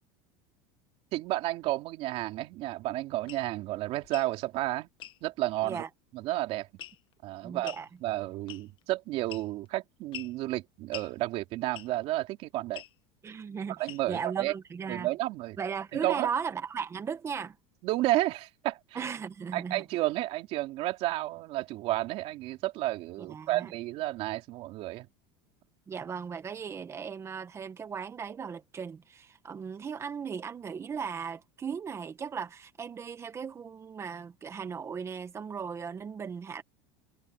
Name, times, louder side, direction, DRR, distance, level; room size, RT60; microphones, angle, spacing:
voice 1, 1.1-4.9 5.2-5.8 6.1-6.7 7.2-7.7 8.0-12.8 13.8-14.5 14.9-15.6 16.0-16.3 17.8-18.8 19.5-25.1, right 17 dB, 50° right, 3.3 m, -31 dB
sound 1, 3.3-3.5 4.0-4.3 5.0-5.2 6.8-7.1 7.6-7.9 8.5-8.8 9.3-9.7 10.1-10.4 10.9-11.1 11.7-12.0 12.7-12.9 13.9-14.2, left 12 dB, 35° left, 1.5 m, -44 dB
voice 2, 7.4-7.9 13.2-15.1 15.6-17.6 18.9-19.8 23.2-23.7 25.9-36.6, right 6 dB, 20° right, 1.6 m, -37 dB
supercardioid pair, 150°, 13 cm